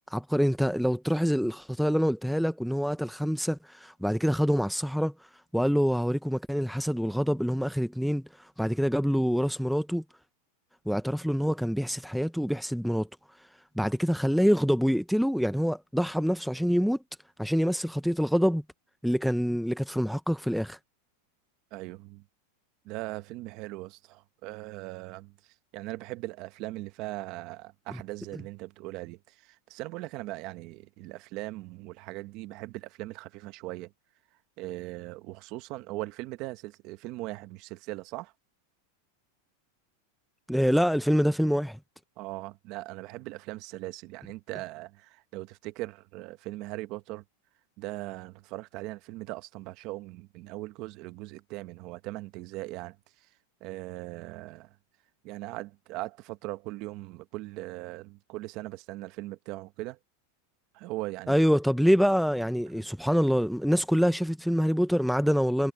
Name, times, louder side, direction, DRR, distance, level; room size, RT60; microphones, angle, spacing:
voice 1, 0.1-10.0 10.9-13.1 13.4-13.5 13.8-17.0 17.4-18.6 19.0-20.8 40.5-41.8 61.3-65.7, equal, ahead, 0.5 m, -26 dB
voice 2, 21.7-22.2 22.8-25.3 25.7-33.9 34.6-38.3 42.2-47.2 47.8-53.0 53.6-54.7 55.2-60.0 60.7-61.4 62.7-62.8, right 19 dB, 35° right, 0.9 m, -39 dB
supercardioid pair, 165°, 0 cm